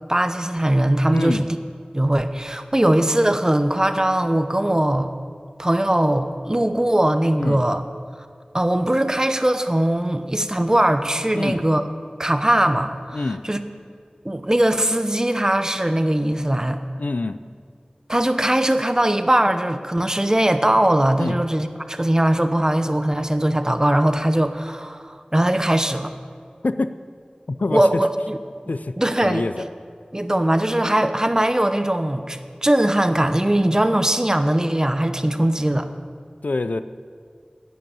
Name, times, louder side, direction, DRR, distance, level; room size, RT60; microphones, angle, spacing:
voice 1, 0.1-1.5 1.9-5.1 5.6-7.8 8.5-11.8 12.2-13.6 14.2-16.8 18.1-26.1 27.7-28.4 29.0-29.4 30.1-35.9, right 1 dB, 25° right, 9 dB, 0.8 m, -20 dB
voice 2, 1.1-1.5 7.4-7.6 11.3-11.6 13.1-13.4 17.0-17.4 21.2-21.4 26.6-26.9 27.5-28.0 28.7-29.0 29.2-29.7 36.4-36.8, left 3 dB, 80° left, 12 dB, 0.5 m, -25 dB
11.0 x 9.5 x 8.7 m, 2.1 s
wide cardioid pair, 50°, 3 cm